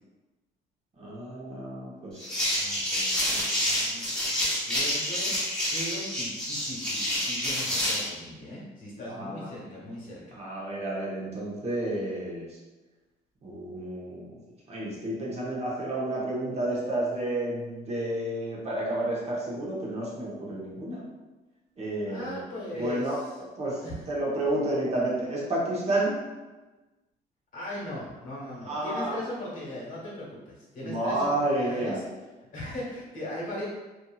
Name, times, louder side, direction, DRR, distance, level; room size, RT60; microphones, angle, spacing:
voice 1, 1.0-2.3 9.1-9.5 10.3-12.5 13.4-14.3 14.7-21.0 21.8-22.4 22.8-23.2 23.6-23.8 24.1-26.2 28.7-29.2 30.8-32.0, right 1 dB, 40° right, -5 dB, 0.8 m, -30 dB
sound 1, 2.2-8.1, equal, 5° left, 1.0 m, -28 dB
voice 2, 2.6-10.4 22.1-23.3 23.8-24.1 27.5-32.0 32.5-33.7, left 1 dB, 50° left, -5 dB, 1.2 m, -39 dB
2.7 x 2.6 x 2.3 m, 1.2 s
cardioid pair, 110°, 17 cm